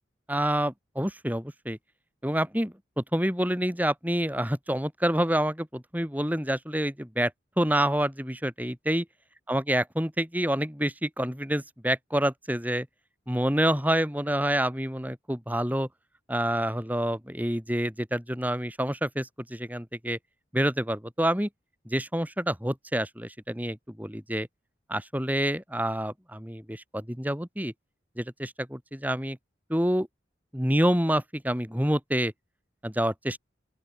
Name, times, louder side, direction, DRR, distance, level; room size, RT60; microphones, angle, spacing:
voice 1, 0.3-1.8 2.2-7.3 7.6-9.0 9.5-12.9 13.3-15.9 16.3-20.2 20.5-21.5 21.9-24.5 24.9-27.7 28.2-29.4 29.7-30.1 30.5-32.3 32.8-33.4, equal, 10° right, 5.8 m, -27 dB
open air
head